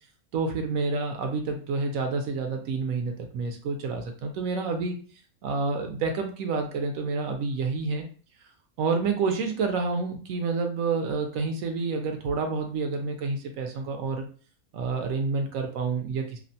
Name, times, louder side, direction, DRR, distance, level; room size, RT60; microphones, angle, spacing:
voice 1, 0.3-5.0 5.4-8.1 8.8-14.2 14.7-16.4, right 4 dB, 75° right, 5 dB, 0.9 m, -28 dB
2.7 x 2.1 x 2.6 m, 0.40 s
omnidirectional pair, 1.5 m